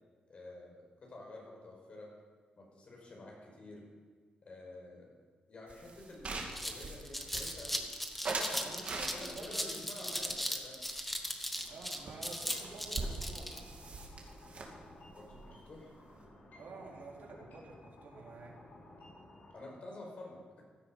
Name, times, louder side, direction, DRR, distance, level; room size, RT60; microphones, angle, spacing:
voice 1, 0.3-2.1 2.6-3.8 4.4-5.1 5.5-7.8 8.2-10.8 15.1-15.9 19.5-20.6, left 2 dB, 45° left, -1 dB, 5.0 m, -50 dB
sound 1, 5.7-7.8 8.2-9.6 10.1-11.4 11.7-11.8 12.1-12.2 12.4-16.2, right 3 dB, 45° right, 2.6 m, -42 dB
sound 2, 5.8-5.9 6.2-13.6, equal, 5° left, 1.4 m, -38 dB
voice 2, 8.6-10.2 11.7-13.5 16.6-18.6, right 3 dB, 75° right, -2 dB, 3.6 m, -50 dB
sound 3, 11.5-19.5, left 1 dB, 75° left, 4.7 m, -56 dB
16.0 x 13.0 x 6.0 m, 1.5 s
wide cardioid pair, 130°, 3 cm